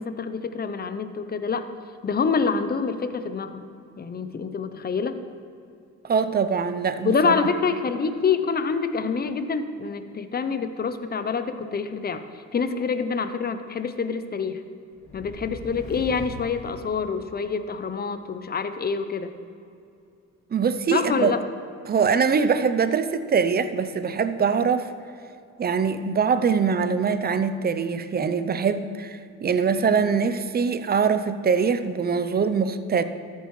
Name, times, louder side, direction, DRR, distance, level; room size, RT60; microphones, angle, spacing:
voice 1, 0.0-1.7 2.0-3.7 4.0-5.2 7.0-12.2 12.5-14.6 15.1-19.3 20.9-21.4, left 5 dB, 30° left, 10 dB, 0.7 m, -26 dB
voice 2, 6.0-7.3 20.5-21.3 21.9-24.9 25.6-33.0, right 6 dB, 30° right, 11 dB, 0.6 m, -23 dB
sound 1, 14.9-17.7, left 1 dB, 45° left, 1.8 m, -41 dB
13.5 x 8.2 x 3.2 m, 2.5 s
cardioid pair, 90°, 30 cm